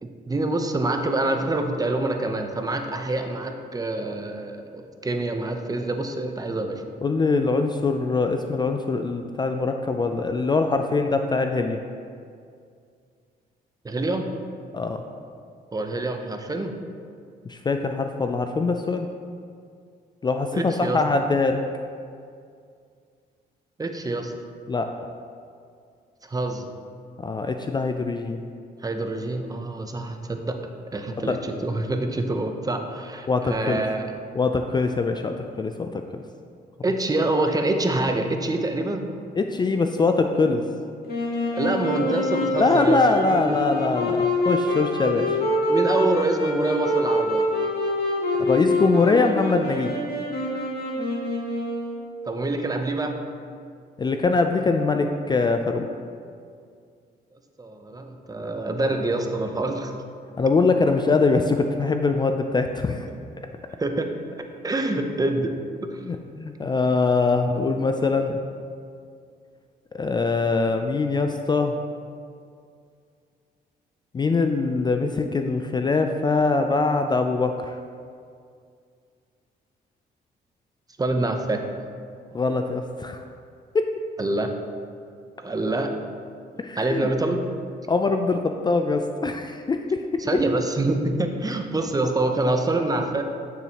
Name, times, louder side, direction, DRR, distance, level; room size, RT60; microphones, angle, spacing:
voice 1, 0.0-6.8 13.8-14.3 15.7-16.7 20.5-21.0 23.8-24.3 26.2-26.7 28.8-30.6 30.9-34.0 36.8-39.1 41.5-43.5 45.7-47.5 52.3-53.2 57.6-60.0 63.8-64.1 64.6-65.5 65.9-66.0 81.0-81.6 84.2-84.5 85.4-85.9 86.8-87.5 90.2-93.2, right 2 dB, 20° right, 5 dB, 0.6 m, -26 dB
voice 2, 7.0-11.8 14.7-15.0 17.5-19.1 20.2-21.6 24.7-24.9 27.2-28.4 31.3-31.4 33.3-33.8 34.4-36.0 39.4-40.6 42.6-45.4 48.4-49.9 54.0-55.9 60.4-63.1 66.1-68.4 69.9-71.7 74.1-77.7 82.3-83.2 83.7-83.9 86.6-87.1 87.9-90.2, left 3 dB, 25° left, 6 dB, 0.4 m, -23 dB
Wind instrument woodwind instrument, 41.1-52.2, left 1 dB, 65° left, 1.9 m, -25 dB
8.1 x 7.0 x 2.9 m, 2.3 s
cardioid pair, 95°, 18 cm